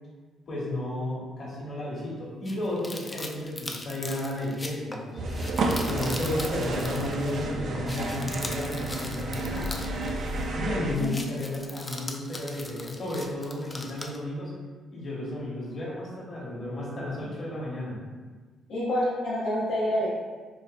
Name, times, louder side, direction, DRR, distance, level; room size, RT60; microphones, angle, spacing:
voice 1, 0.5-5.4 5.8-9.7 10.5-14.5 14.9-18.0, left 1 dB, 50° left, -6 dB, 1.3 m, -33 dB
sound 1, 2.4-7.5 7.7-10.6 10.9-14.2, left 2 dB, 20° left, 0.4 m, -40 dB
sound 2, 5.2-11.0, right 2 dB, 65° right, 0.4 m, -31 dB
voice 2, 18.7-20.1, equal, 80° left, -11 dB, 1.0 m, -27 dB
4.4 x 2.2 x 2.5 m, 1.4 s
cardioid pair, 90°, 0 cm